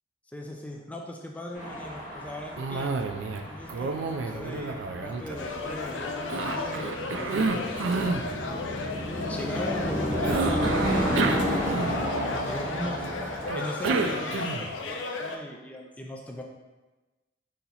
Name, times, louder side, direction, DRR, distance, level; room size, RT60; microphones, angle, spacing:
voice 1, 0.3-2.9 3.4-8.7 9.3-13.1 13.5-16.4, left 1 dB, 10° left, 0 dB, 0.3 m, -39 dB
sound 1, 1.5-13.5, equal, 45° left, 1.2 m, -32 dB
Cough, 2.6-3.4 3.7-5.8 6.3-8.3 10.2-12.2 13.5-14.8, right 4 dB, 80° right, 0.4 m, -30 dB
sound 2, 5.4-15.4, left 3 dB, 80° left, 0.4 m, -35 dB
4.2 x 2.8 x 3.9 m, 1.2 s
head